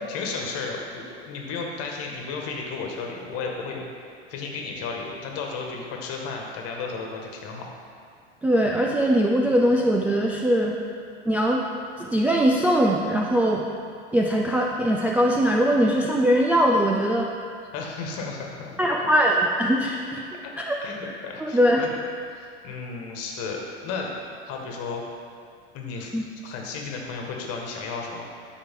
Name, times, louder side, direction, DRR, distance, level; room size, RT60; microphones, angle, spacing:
voice 1, 0.1-3.8 4.3-7.7 17.7-18.8 20.8-21.9 22.3-24.1 24.4-25.0 25.7-26.1 26.4-28.3, left 4 dB, 45° left, 0 dB, 1.7 m, -33 dB
voice 2, 8.4-10.7 11.3-11.6 12.0-13.7 14.1-17.3 18.8-20.2 20.6-20.8 21.0-21.1 21.4-21.8 26.1-26.2, equal, 5° right, -2 dB, 0.3 m, -21 dB
12.5 x 4.9 x 3.7 m, 2.2 s
hypercardioid pair, 100°, 34 cm